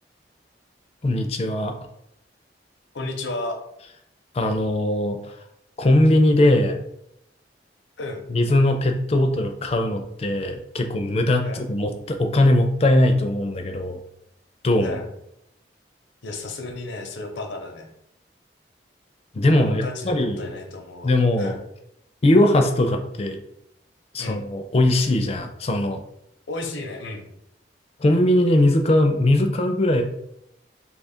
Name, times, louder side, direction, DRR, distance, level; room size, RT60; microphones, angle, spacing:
voice 1, 1.0-1.7 4.3-5.3 5.8-6.8 8.3-14.0 14.6-15.0 19.3-20.5 21.0-21.6 22.2-23.4 24.1-26.0 28.0-30.0, left 1 dB, 35° left, 5 dB, 0.4 m, -20 dB
voice 2, 2.9-3.6 8.0-8.3 11.4-11.7 14.8-15.1 16.2-17.9 19.6-21.6 24.2-24.4 26.5-27.3, left 2 dB, 85° left, 4 dB, 0.7 m, -33 dB
2.9 x 2.4 x 4.3 m, 0.78 s
head